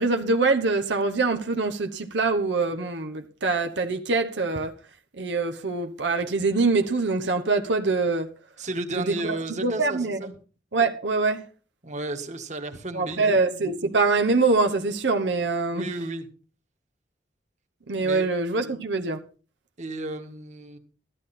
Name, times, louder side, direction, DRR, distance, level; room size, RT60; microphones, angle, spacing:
voice 1, 0.0-4.7 5.2-8.3 8.9-9.4 9.6-10.2 10.7-11.4 12.9-15.9 17.9-19.2, right 3 dB, 90° right, 1.1 m, -24 dB
voice 2, 8.6-10.3 11.8-13.4 15.7-16.3 18.0-18.3 19.8-20.8, right 2 dB, 45° right, 1.7 m, -33 dB
14.0 x 12.0 x 4.3 m
head